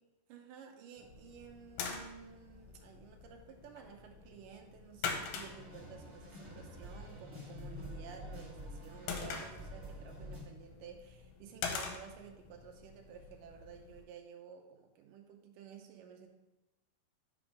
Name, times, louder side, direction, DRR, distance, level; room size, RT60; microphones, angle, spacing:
voice 1, 0.3-16.3, right 7 dB, 80° right, 3 dB, 1.9 m, -53 dB
sound 1, 1.0-14.0, left 5 dB, 80° left, 2.7 m, -45 dB
sound 2, 5.4-10.4, equal, 25° right, 1.7 m, -48 dB
5.9 x 5.2 x 5.0 m, 1.0 s
omnidirectional pair, 4.7 m